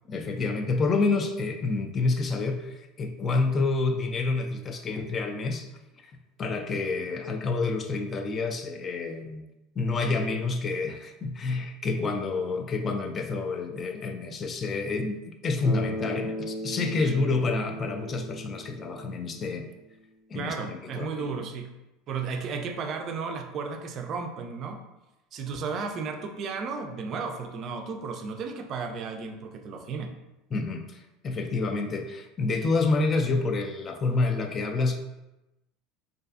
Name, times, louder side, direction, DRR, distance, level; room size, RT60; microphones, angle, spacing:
voice 1, 0.1-5.7 6.4-9.4 9.8-19.7 20.3-21.4 30.5-35.0, left 3 dB, 35° left, 5 dB, 0.3 m, -28 dB
Bass guitar, 15.6-19.8, left 1 dB, 90° left, 1.0 m, -37 dB
voice 2, 20.3-21.7 22.1-24.8 25.3-30.1, right 5 dB, 50° right, 5 dB, 0.3 m, -34 dB
2.4 x 2.3 x 2.3 m, 0.98 s
hypercardioid pair, 85°, 0 cm